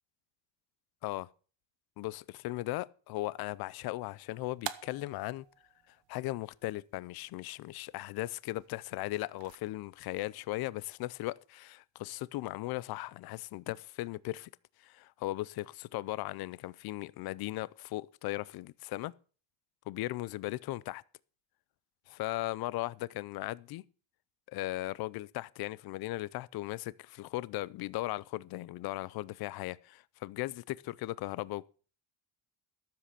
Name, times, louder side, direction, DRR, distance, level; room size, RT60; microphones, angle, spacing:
voice 1, 2.0-5.4 6.1-14.5 14.8-19.1 19.9-21.0 22.1-23.8 24.5-31.7, left 18 dB, 55° left, 0.6 m, -37 dB
sound 1, 3.2-9.6, right 13 dB, 80° right, 1.1 m, -49 dB
13.5 x 7.6 x 6.6 m
cardioid pair, 165°, 43 cm